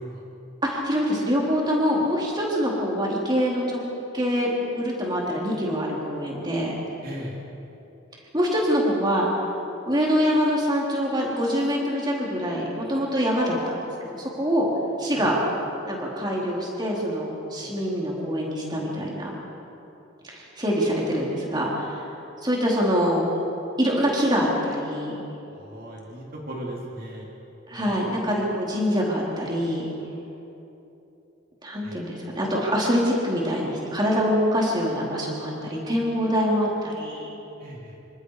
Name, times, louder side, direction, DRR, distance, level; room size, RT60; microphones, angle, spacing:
voice 1, 0.6-3.8 4.1-6.7 8.3-9.3 9.9-14.7 15.0-15.4 15.9-19.3 20.2-22.0 22.4-23.3 23.8-25.2 27.7-29.9 31.6-37.3, equal, 20° right, -3 dB, 3.8 m, -25 dB
voice 2, 7.0-7.4 15.1-15.2 25.5-27.3 27.7-27.9 31.8-32.0 37.6-38.0, equal, 45° right, -3 dB, 3.4 m, -37 dB
27.0 x 25.5 x 4.9 m, 2.9 s
head